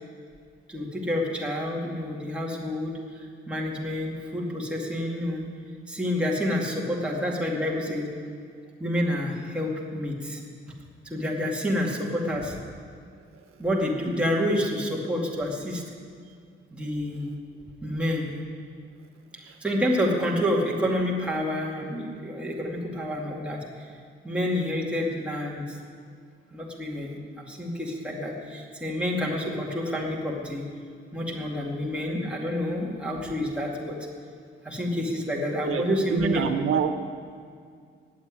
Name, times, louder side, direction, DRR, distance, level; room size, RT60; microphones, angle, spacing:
voice 1, 0.7-5.5 5.9-8.1 8.8-10.4 11.0-12.6 13.6-15.8 16.7-17.3 17.8-18.3 19.3-23.9 24.2-25.8 26.5-30.6 31.1-34.0 34.6-36.5, left 1 dB, 5° right, -3 dB, 2.3 m, -28 dB
voice 2, 35.7-36.9, right 7 dB, 90° right, 7 dB, 1.0 m, -27 dB
19.5 x 7.3 x 9.8 m, 2.2 s
wide cardioid pair, 175°, 21 cm